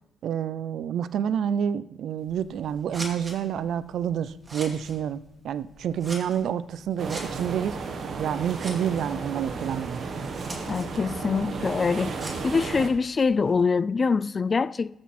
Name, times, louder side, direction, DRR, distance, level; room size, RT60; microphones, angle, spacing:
voice 1, 0.2-5.2 5.4-7.8 8.2-10.1, right 8 dB, 70° right, 0.4 m, -28 dB
Scissors, 2.2-13.6, right 2 dB, 25° right, 2.5 m, -45 dB
sound 1, 7.0-12.9, right 4 dB, 55° right, 1.3 m, -34 dB
voice 2, 10.7-12.2 12.4-14.9, left 4 dB, 35° left, 0.3 m, -24 dB
13.5 x 6.2 x 4.3 m
cardioid pair, 90°, 0 cm